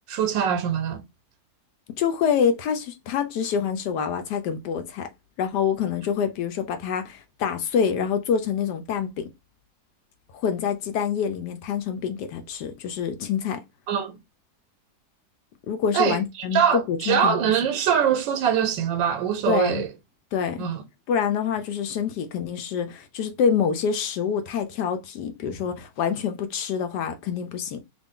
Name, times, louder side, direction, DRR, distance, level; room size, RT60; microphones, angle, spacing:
voice 1, 0.1-1.0 13.9-14.2 15.9-19.9 20.6-20.8, right 8 dB, 85° right, 1.3 m, -23 dB
voice 2, 2.0-5.1 5.4-9.2 10.3-13.6 15.7-17.4 19.5-19.8 20.3-20.7 21.1-27.8, left 7 dB, 75° left, 1.1 m, -26 dB
2.9 x 2.6 x 3.5 m
omnidirectional pair, 2.0 m